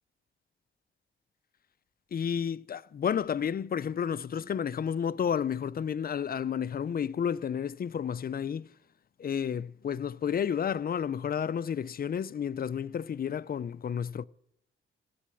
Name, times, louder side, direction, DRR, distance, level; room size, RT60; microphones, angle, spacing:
voice 1, 2.1-8.7 9.2-14.2, left 8 dB, 50° left, 0.5 m, -31 dB
14.5 x 8.6 x 9.8 m
cardioid pair, 90°, 20 cm